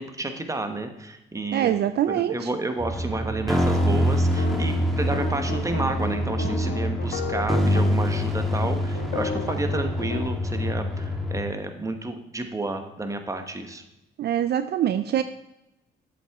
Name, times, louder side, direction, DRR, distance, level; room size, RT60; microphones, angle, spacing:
voice 1, 0.0-1.7 2.1-13.8, right 2 dB, 15° right, 6 dB, 1.1 m, -31 dB
voice 2, 1.5-2.5 14.2-15.2, right 10 dB, 55° right, 11 dB, 0.4 m, -24 dB
sound 1, 2.8-11.4, equal, ahead, 1.5 m, -25 dB
sound 2, 4.3-7.8 8.1-8.3 8.6-10.2, left 5 dB, 70° left, 1.1 m, -33 dB
7.9 x 7.6 x 3.6 m, 0.94 s
cardioid pair, 90°, 20 cm